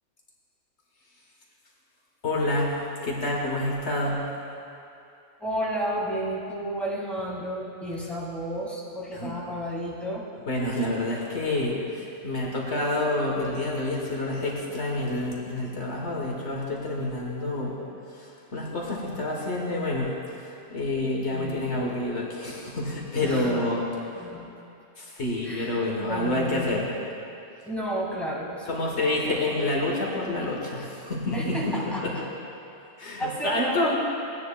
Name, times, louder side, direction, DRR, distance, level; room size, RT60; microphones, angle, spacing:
voice 1, 2.2-2.8 3.0-4.2 9.1-9.3 10.5-17.8 18.2-20.1 20.7-23.8 25.0-26.9 28.7-31.8 32.0-32.1 33.0-33.9, left 1 dB, 65° left, -3 dB, 1.6 m, -28 dB
voice 2, 5.4-10.3 21.3-21.8 23.2-23.7 24.1-24.5 25.4-26.7 27.7-29.7 31.3-32.3 33.2-33.9, right 1 dB, ahead, -6 dB, 1.9 m, -32 dB
16.5 x 9.8 x 2.3 m, 2.7 s
omnidirectional pair, 1.2 m